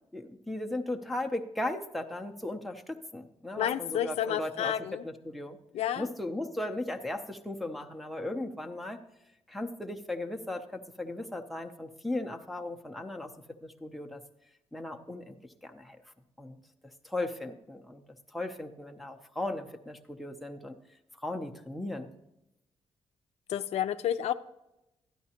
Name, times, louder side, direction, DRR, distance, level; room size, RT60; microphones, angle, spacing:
voice 1, 0.1-4.7 5.0-5.6 6.0-9.0 9.5-13.3 13.6-14.2 14.7-16.0 16.4-16.6 17.0-18.0 18.3-20.8 21.2-22.1, left 1 dB, ahead, 2 dB, 0.6 m, -37 dB
voice 2, 3.6-5.0 5.7-6.1 23.5-24.3, left 10 dB, 75° left, 10 dB, 0.5 m, -30 dB
12.5 x 10.5 x 2.9 m, 0.89 s
wide cardioid pair, 165°, 11 cm